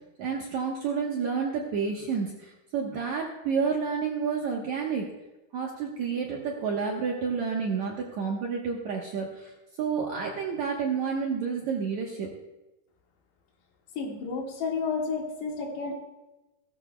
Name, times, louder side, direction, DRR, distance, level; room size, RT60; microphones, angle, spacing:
voice 1, 0.2-5.1 5.5-9.5 9.8-12.3, right 5 dB, 65° right, -1 dB, 1.8 m, -30 dB
voice 2, 14.0-15.9, left 5 dB, 85° left, 0 dB, 3.9 m, -31 dB
18.0 x 13.5 x 2.2 m, 1.0 s
omnidirectional pair, 4.8 m